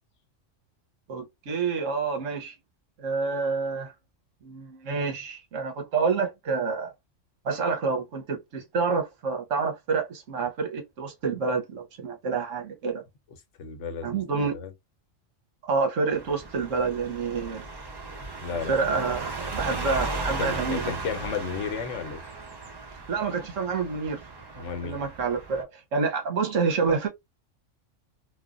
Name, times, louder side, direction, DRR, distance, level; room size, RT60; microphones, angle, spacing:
voice 1, 1.1-2.6 3.0-3.9 4.4-6.9 7.4-13.0 14.0-14.6 15.6-17.6 18.7-20.9 23.1-24.2 24.6-27.1, right 4 dB, 75° right, 1.3 m, -28 dB
voice 2, 13.6-14.2 14.5-14.7 18.4-19.0 20.4-22.2 24.6-25.0, left 6 dB, 75° left, 1.0 m, -33 dB
sound 1, 16.1-25.6, right 3 dB, 30° right, 0.4 m, -36 dB
3.2 x 2.1 x 2.4 m
omnidirectional pair, 1.3 m